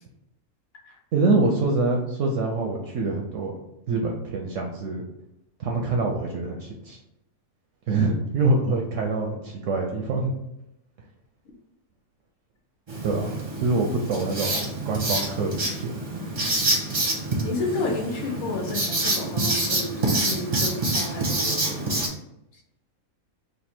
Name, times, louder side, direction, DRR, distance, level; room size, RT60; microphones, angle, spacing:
voice 1, 1.1-3.6 3.9-5.1 5.6-7.0 7.9-10.3 13.0-13.3 13.6-16.0, right 3 dB, 70° right, 1 dB, 0.8 m, -25 dB
Writing, 12.9-22.1, right 2 dB, 35° right, 0.6 m, -27 dB
voice 2, 17.4-22.0, left 2 dB, 70° left, 1 dB, 1.2 m, -31 dB
3.3 x 2.6 x 4.2 m, 0.85 s
omnidirectional pair, 1.6 m